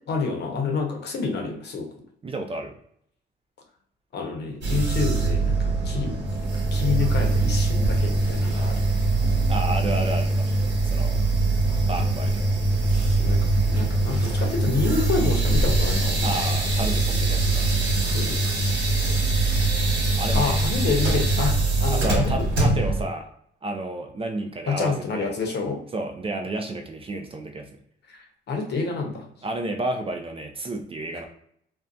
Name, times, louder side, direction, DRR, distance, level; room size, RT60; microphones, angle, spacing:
voice 1, 0.1-1.9 4.1-6.1 6.7-8.9 13.2-16.3 18.0-18.5 20.3-22.3 24.7-25.8 28.1-29.3, left 4 dB, 60° left, 2 dB, 0.7 m, -28 dB
voice 2, 2.2-2.7 9.5-10.5 10.8-11.2 11.9-12.5 16.2-17.7 20.2-20.6 21.9-23.3 23.6-25.3 25.9-27.7 29.4-31.2, right 2 dB, 30° right, 4 dB, 0.4 m, -31 dB
sound 1, 4.6-23.0, right 2 dB, 65° right, 1.3 m, -22 dB
2.6 x 2.2 x 2.3 m, 0.67 s
cardioid pair, 90°, 20 cm